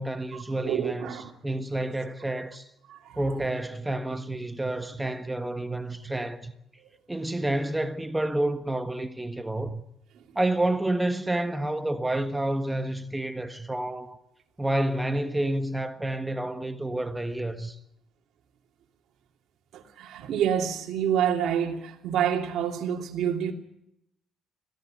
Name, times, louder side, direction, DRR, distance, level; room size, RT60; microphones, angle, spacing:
voice 1, 0.0-2.7 3.2-6.5 7.1-9.8 10.3-14.2 14.6-17.8, right 1 dB, 10° right, 1.5 m, -29 dB
voice 2, 0.6-1.3 2.9-3.2 19.7-23.5, right 9 dB, 75° right, 2.9 m, -27 dB
22.0 x 16.5 x 7.8 m
cardioid pair, 105°, 0 cm